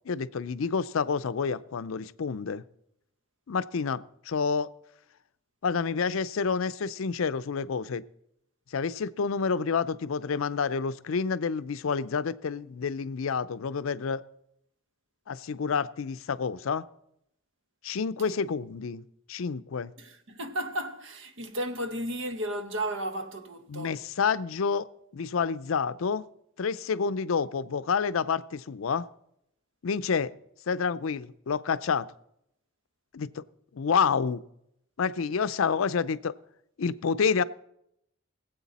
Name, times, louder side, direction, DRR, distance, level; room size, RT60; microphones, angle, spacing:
voice 1, 0.1-2.6 3.5-4.7 5.6-8.0 8.7-14.2 15.3-16.8 17.8-19.0 19.3-19.9 23.7-24.9 25.1-26.2 26.6-29.1 29.8-30.3 30.7-32.1 33.1-33.4 33.7-34.4 35.0-36.3 36.8-37.4, left 5 dB, 80° left, 0.5 m, -28 dB
voice 2, 20.0-24.0, right 1 dB, 65° right, 1.0 m, -34 dB
22.0 x 8.0 x 4.1 m
head